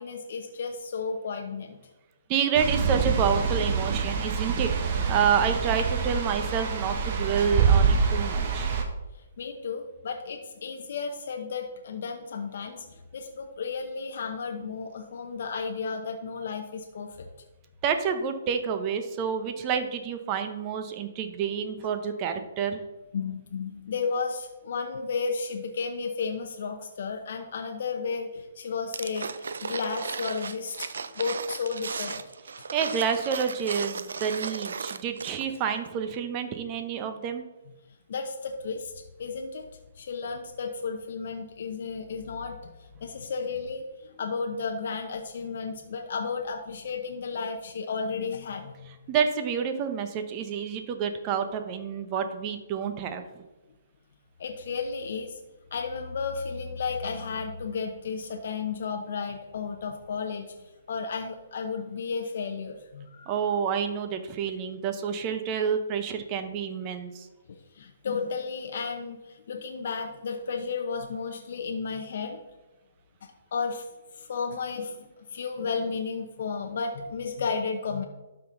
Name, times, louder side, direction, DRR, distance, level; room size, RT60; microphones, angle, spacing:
voice 1, 0.0-1.8 9.4-17.3 23.1-30.9 31.1-32.2 38.1-39.6 40.0-42.7 43.0-43.8 44.1-48.9 54.4-55.4 55.7-60.5 60.9-63.3 67.5-72.4 73.2-73.8 74.1-75.0 75.3-78.0, left 5 dB, 60° left, 3 dB, 0.9 m, -33 dB
voice 2, 2.3-4.8 5.1-8.7 17.8-22.8 32.7-37.4 49.1-53.2 63.3-67.3, right 7 dB, 30° right, 7 dB, 0.9 m, -28 dB
sound 1, 2.5-8.8, right 6 dB, 45° right, 1.3 m, -25 dB
sound 2, 28.9-35.6 35.8-35.9, right 5 dB, 70° right, 0.5 m, -36 dB
12.0 x 4.1 x 3.9 m, 1.1 s
hypercardioid pair, 135°, 0 cm